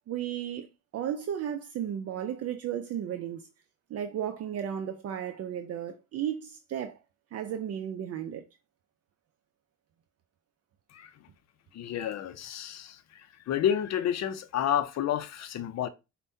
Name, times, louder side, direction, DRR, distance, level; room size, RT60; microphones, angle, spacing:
voice 1, 0.1-3.5 3.9-7.0 7.3-8.4, right 9 dB, 55° right, 0.4 m, -34 dB
voice 2, 11.7-15.9, left 10 dB, 60° left, 0.5 m, -30 dB
5.3 x 2.2 x 2.6 m
cardioid pair, 90°, 30 cm